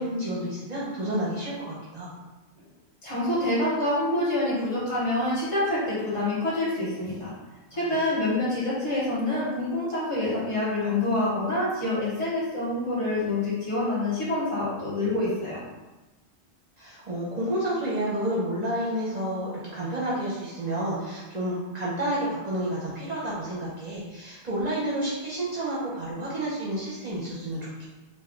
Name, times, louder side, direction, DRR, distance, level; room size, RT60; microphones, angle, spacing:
voice 1, 0.0-2.1 7.7-7.8 16.8-27.9, right 1 dB, 45° right, -7 dB, 0.8 m, -30 dB
voice 2, 3.0-7.3 7.7-15.6, left 2 dB, 30° left, -8 dB, 1.3 m, -26 dB
3.4 x 2.5 x 3.6 m, 1.1 s
omnidirectional pair, 1.1 m